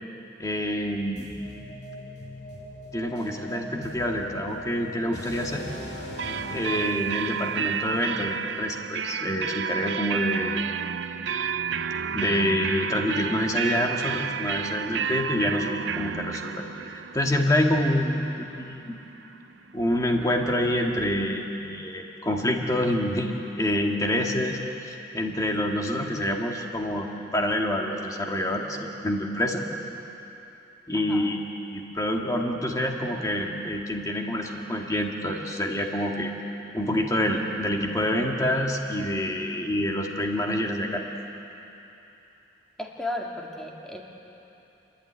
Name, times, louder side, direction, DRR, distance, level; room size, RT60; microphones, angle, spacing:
voice 1, 0.4-1.3 2.9-5.6 6.5-10.7 12.1-18.9 19.7-29.6 30.9-31.4 31.7-36.3 36.7-41.0, left 1 dB, 20° left, 0 dB, 1.9 m, -27 dB
sound 1, 1.2-9.0, left 1 dB, 70° left, 5.7 m, -41 dB
sound 2, 6.2-19.8, right 7 dB, 85° right, 0.6 m, -31 dB
voice 2, 30.9-31.3 42.8-44.0, left 1 dB, 5° left, -2 dB, 2.2 m, -34 dB
29.5 x 12.0 x 9.9 m, 3.0 s
head